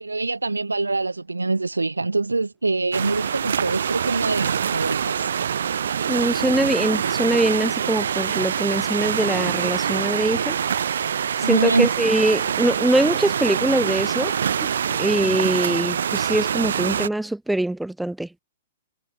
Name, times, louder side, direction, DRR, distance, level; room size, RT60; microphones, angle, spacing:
voice 1, 0.0-5.3 11.4-11.9, right 3 dB, 75° right, 0.4 m, -24 dB
sound 1, 2.9-17.1, right 8 dB, 60° right, 1.5 m, -25 dB
voice 2, 6.1-10.6 11.4-14.3 15.0-18.3, right 1 dB, 5° right, 0.4 m, -23 dB
figure-of-eight pair, 110°, 0 cm